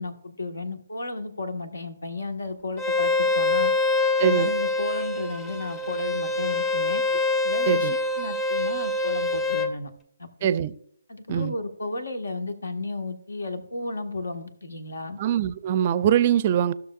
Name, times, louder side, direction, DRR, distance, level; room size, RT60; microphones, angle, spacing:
voice 1, 0.0-3.7 4.2-7.0 7.4-9.9 10.2-10.5 11.1-15.2, left 2 dB, 75° left, 7 dB, 1.5 m, -33 dB
Bowed string instrument, 2.8-9.7, left 3 dB, 5° left, 0.6 m, -25 dB
voice 2, 4.2-4.5 7.7-7.9 10.4-10.7 11.3-11.5 15.2-16.7, right 10 dB, 35° right, 16 dB, 0.5 m, -22 dB
15.5 x 6.5 x 2.4 m, 0.67 s
figure-of-eight pair, 145°, 0 cm